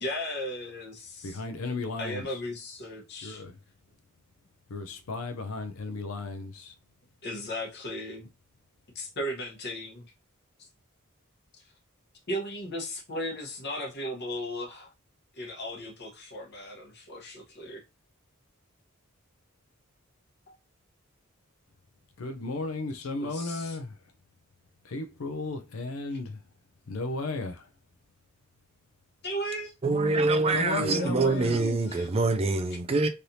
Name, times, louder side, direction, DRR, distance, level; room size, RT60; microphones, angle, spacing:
voice 1, 0.0-1.4 2.0-3.4 7.2-8.3 8.9-10.0 12.3-14.9 15.3-17.8 20.5-20.6 23.2-23.8 29.2-29.7 30.1-30.5 31.0-32.1, equal, 50° left, 1.1 m, -36 dB
voice 2, 1.2-2.4 3.2-3.6 4.7-6.7 22.2-24.0 24.8-26.4 26.9-27.7 30.5-31.6, left 3 dB, 70° left, 0.5 m, -34 dB
voice 3, 29.8-33.1, right 3 dB, 30° right, 0.4 m, -25 dB
3.2 x 2.8 x 2.6 m
head